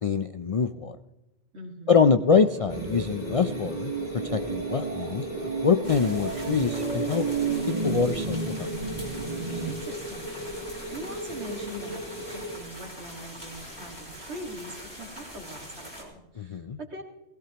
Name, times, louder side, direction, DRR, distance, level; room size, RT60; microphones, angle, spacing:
voice 1, 0.0-1.0 1.9-3.9 4.2-7.2 7.8-8.7 16.4-16.8, left 5 dB, 60° left, 9 dB, 0.3 m, -24 dB
voice 2, 1.5-2.0 9.6-10.5 10.9-17.0, right 1 dB, 65° right, 2 dB, 2.3 m, -42 dB
sound 1, 2.4-9.7, right 5 dB, 35° right, 1.2 m, -32 dB
sound 2, 2.7-12.6, equal, 80° left, 3.6 m, -37 dB
sound 3, 5.8-16.0, equal, 20° left, 3.7 m, -43 dB
17.5 x 16.5 x 2.9 m, 0.97 s
omnidirectional pair, 1.2 m